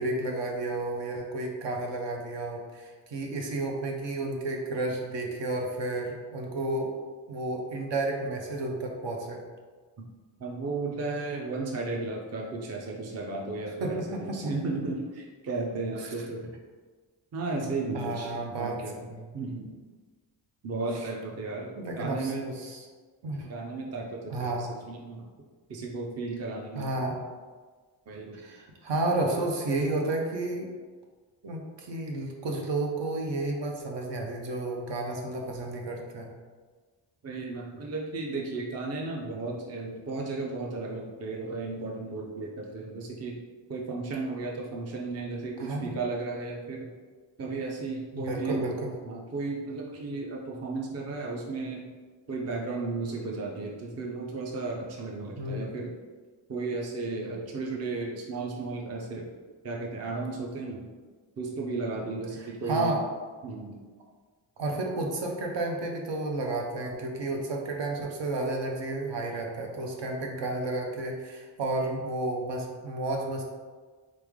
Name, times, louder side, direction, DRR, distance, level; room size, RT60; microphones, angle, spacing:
voice 1, 0.0-6.9 7.3-9.4 13.8-14.5 16.0-16.1 17.9-18.8 19.1-19.3 20.9-21.1 21.7-22.8 23.2-23.5 24.3-24.7 26.7-27.2 28.3-30.7 31.4-36.3 45.6-46.0 48.1-48.9 55.4-55.6 62.6-63.0 64.6-73.4, right 2 dB, 70° right, 1 dB, 0.8 m, -32 dB
voice 2, 10.4-16.5 17.3-19.0 19.3-19.7 20.6-22.5 23.5-25.2 25.7-26.9 28.1-28.4 37.2-43.3 43.7-46.9 47.4-48.6 49.0-51.8 52.3-55.9 56.5-59.3 59.6-60.9 61.4-63.0 63.4-63.8, right 3 dB, 35° right, -1 dB, 0.5 m, -34 dB
4.0 x 3.3 x 3.5 m, 1.4 s
wide cardioid pair, 165°, 44 cm